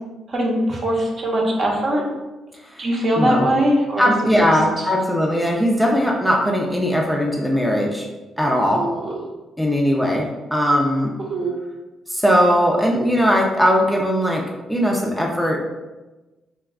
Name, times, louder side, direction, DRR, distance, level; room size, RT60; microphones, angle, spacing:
voice 1, 0.3-2.0 2.8-4.1 4.4-4.5 8.7-9.2 11.3-11.6, right 1 dB, 45° right, -1 dB, 0.7 m, -21 dB
voice 2, 3.2-3.5 4.0-8.1 8.4-8.8 9.6-11.1 12.1-14.4 14.7-15.6, equal, ahead, -2 dB, 0.4 m, -19 dB
2.3 x 2.2 x 3.5 m, 1.1 s
cardioid pair, 90°, 0 cm